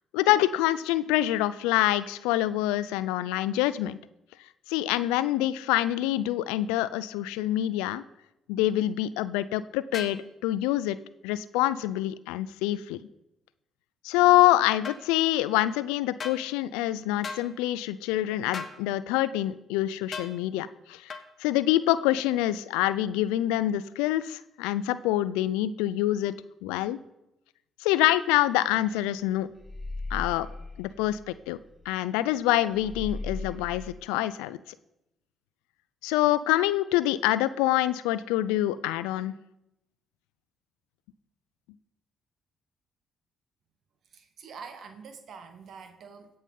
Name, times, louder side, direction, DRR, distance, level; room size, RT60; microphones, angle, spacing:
voice 1, 0.1-4.0 4.7-8.0 8.5-11.0 11.2-13.0 14.0-26.3 26.6-27.0 27.8-29.5 30.1-30.5 30.8-31.6 31.9-34.6 36.0-39.3, left 14 dB, 85° left, 16 dB, 0.4 m, -26 dB
sound 1, 9.9-10.2 14.8-15.0 16.2-16.4 17.2-17.5 18.5-18.8 20.1-20.3 21.1-21.3, left 5 dB, 50° left, 1.2 m, -36 dB
sound 2, 28.7-28.9 29.2-32.0 32.3-32.4 32.7-34.0, left 2 dB, 10° right, 3.4 m, -38 dB
voice 2, 44.1-46.3, right 5 dB, 60° right, 8 dB, 1.0 m, -45 dB
16.0 x 5.5 x 5.4 m, 0.88 s
hypercardioid pair, 55°, 0 cm